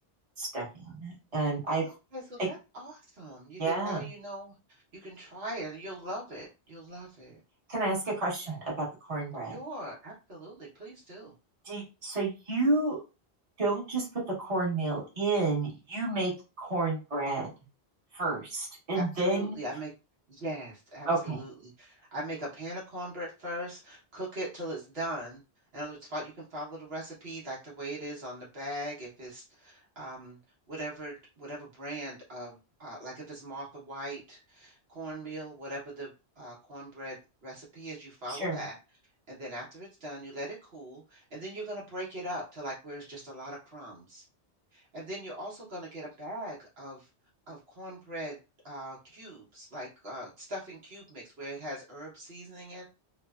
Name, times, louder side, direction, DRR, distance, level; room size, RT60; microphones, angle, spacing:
voice 1, 0.4-1.9 3.6-4.1 7.7-9.6 11.6-13.0 13.6-14.1 14.4-16.3 16.6-17.5 18.1-19.6 21.0-21.4 38.3-38.6, right 2 dB, 35° right, -5 dB, 1.1 m, -30 dB
voice 2, 1.8-7.4 9.5-11.3 18.9-19.9 20.3-25.4 25.7-30.4 30.7-36.1 36.4-38.8 39.3-44.2 44.7-47.1 47.5-48.4 48.6-52.9, right 1 dB, 65° right, -4 dB, 1.1 m, -40 dB
2.9 x 2.0 x 2.3 m, 0.29 s
omnidirectional pair, 1.1 m